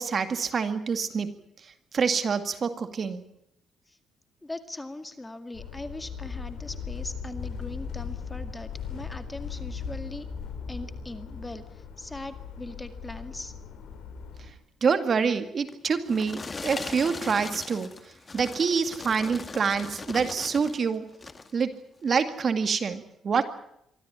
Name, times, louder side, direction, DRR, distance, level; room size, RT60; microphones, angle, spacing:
voice 1, 0.0-3.2 14.8-17.9 18.3-21.0 21.5-23.4, right 5 dB, 45° right, 9 dB, 2.0 m, -27 dB
voice 2, 4.4-10.3 10.7-13.5, left 2 dB, 15° left, 9 dB, 2.1 m, -40 dB
sound 1, 5.5-14.5, left 6 dB, 75° left, 5.0 m, -38 dB
sound 2, 15.7-20.8 21.1-21.6 22.1-22.3, left 4 dB, 30° left, 2.0 m, -39 dB
24.0 x 14.0 x 9.9 m, 0.76 s
cardioid pair, 90°, 0 cm